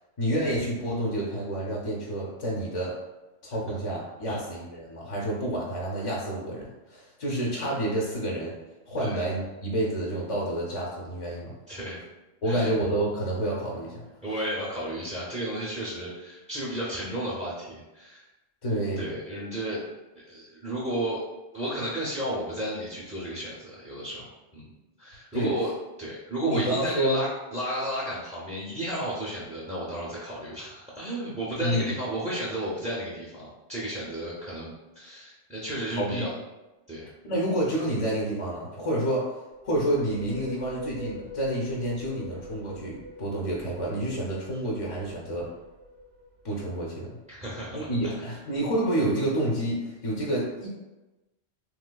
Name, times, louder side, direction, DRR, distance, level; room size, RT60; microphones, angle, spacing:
voice 1, 0.2-2.9 3.4-8.5 8.9-11.5 12.4-14.0 18.6-19.1 25.3-25.5 26.4-27.2 31.6-31.9 36.0-36.3 37.2-39.3 39.6-45.5 46.4-47.2 47.7-50.7, right 1 dB, 45° left, -4 dB, 0.5 m, -29 dB
voice 2, 11.7-12.0 12.4-12.7 14.2-18.2 19.0-19.8 20.3-21.2 21.5-24.7 25.0-25.7 26.0-36.3 36.9-37.1 47.3-48.4, right 1 dB, 10° right, -6 dB, 0.4 m, -33 dB
sound 1, 39.5-47.2, left 1 dB, 65° right, 0.7 m, -44 dB
3.2 x 3.1 x 2.2 m, 1.1 s
omnidirectional pair, 1.1 m